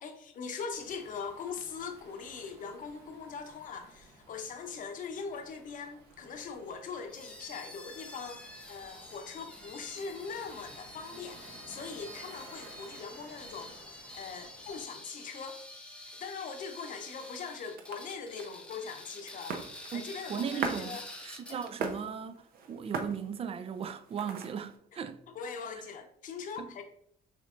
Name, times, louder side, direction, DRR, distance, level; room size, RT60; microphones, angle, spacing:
voice 1, 0.0-15.6 16.2-21.0 21.5-21.6 25.3-26.8, left 5 dB, 50° left, 0.8 m, -41 dB
Waves surf, 0.7-14.9, right 2 dB, 75° right, 1.8 m, -55 dB
sound 1, 7.1-21.9, left 1 dB, 5° left, 0.6 m, -48 dB
sound 2, 16.7-24.8, right 5 dB, 60° right, 0.7 m, -41 dB
voice 2, 19.9-25.2 26.6-26.7, right 7 dB, 35° right, 0.4 m, -37 dB
6.5 x 3.1 x 2.5 m
cardioid pair, 110°, 17 cm